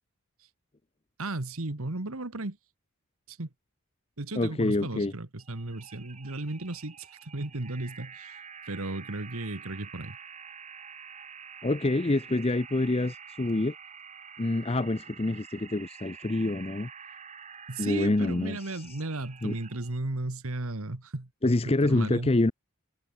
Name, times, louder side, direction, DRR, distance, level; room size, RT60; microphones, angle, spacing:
voice 1, 1.2-2.6 3.3-3.5 4.2-8.4 8.7-10.2 17.7-21.3 21.6-22.3, right 2 dB, 70° right, 1.7 m, -35 dB
voice 2, 4.4-5.1 11.6-13.7 14.4-16.9 17.8-19.0 19.4-19.6 21.4-22.5, left 2 dB, 25° left, 0.6 m, -26 dB
sound 1, 5.4-20.0, right 6 dB, 30° right, 1.5 m, -48 dB
head